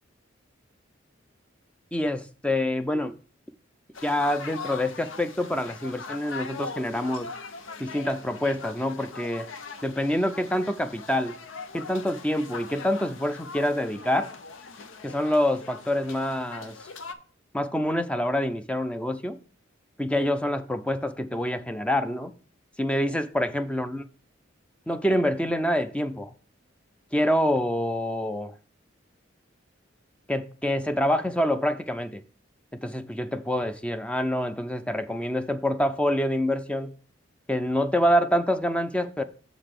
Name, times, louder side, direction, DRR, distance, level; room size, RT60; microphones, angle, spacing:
voice 1, 1.9-3.2 4.0-7.3 7.8-9.5 9.8-11.3 11.7-14.3 15.0-16.8 17.5-19.4 20.0-22.3 22.8-24.0 24.9-26.3 27.1-28.5 30.3-32.2 32.7-36.9 37.5-39.2, left 1 dB, 5° left, 0.4 m, -26 dB
sound 1, 3.9-17.1, left 4 dB, 90° left, 0.7 m, -41 dB
7.2 x 4.0 x 6.5 m
head